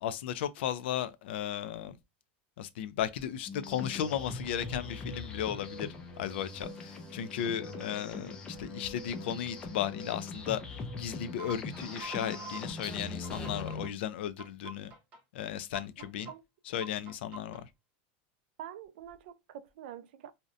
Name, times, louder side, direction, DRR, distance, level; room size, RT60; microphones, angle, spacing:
voice 1, 0.0-2.0 2.6-5.9 6.2-10.6 11.0-14.9 15.3-16.3 16.7-17.7, left 10 dB, 85° left, 0.4 m, -35 dB
sound 1, 3.5-13.8, left 3 dB, 15° left, 0.4 m, -42 dB
sound 2, 3.9-12.8 13.2-13.9 14.4-15.2 15.7-16.3 16.8-17.6, right 3 dB, 25° right, 0.8 m, -49 dB
voice 2, 16.0-16.4 18.6-20.3, right 10 dB, 70° right, 0.4 m, -46 dB
2.6 x 2.1 x 2.4 m
supercardioid pair, 175°, 6 cm